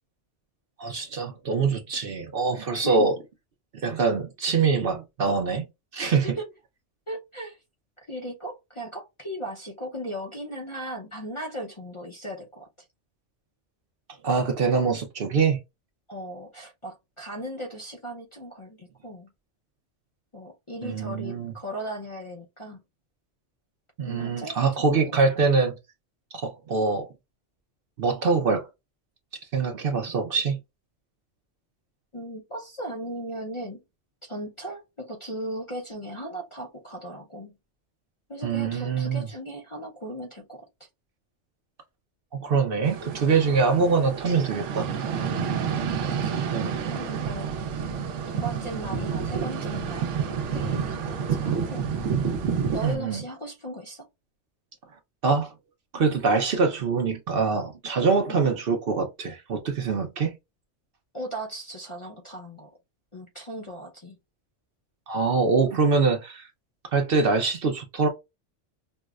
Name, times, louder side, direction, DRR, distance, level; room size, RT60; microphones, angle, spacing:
voice 1, 0.8-3.1 3.8-5.6 5.9-6.3 14.2-15.6 20.8-21.5 24.0-25.8 26.3-27.1 28.0-28.7 29.5-30.6 38.4-39.3 42.3-44.9 46.5-46.7 52.8-53.2 55.2-55.5 55.9-60.3 65.1-66.5 66.9-68.1, right 4 dB, 55° right, 0.8 m, -24 dB
voice 2, 2.7-3.1 6.1-6.4 7.1-7.6 8.1-12.7 16.1-19.3 20.3-22.8 24.0-25.2 32.1-33.8 34.2-37.6 38.3-40.9 45.5-45.6 46.1-47.5 48.3-52.2 52.7-54.1 58.3-58.4 61.1-62.8 63.1-64.2, right 1 dB, 35° left, 0.6 m, -37 dB
sound 1, 42.9-53.0, right 7 dB, 80° right, 1.0 m, -29 dB
5.3 x 2.1 x 2.3 m
omnidirectional pair, 1.3 m